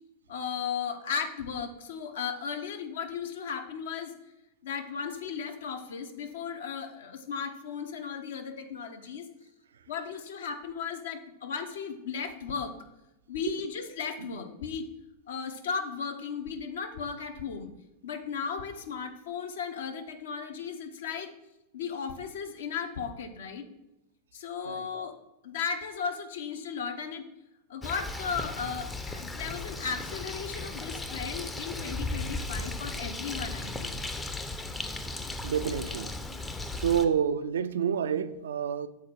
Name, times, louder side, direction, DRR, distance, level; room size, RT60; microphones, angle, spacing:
voice 1, 0.3-4.2 4.6-9.3 9.9-12.8 13.3-14.9 15.3-17.7 18.0-21.3 21.7-23.7 24.3-27.3 27.7-34.0, left 6 dB, 60° left, 0.7 m, -36 dB
Bird, 27.8-37.1, left 2 dB, 10° left, 0.5 m, -36 dB
voice 2, 35.4-36.2 36.8-38.9, right 8 dB, 65° right, 0.3 m, -28 dB
7.1 x 4.2 x 4.5 m
figure-of-eight pair, 90°, 0 cm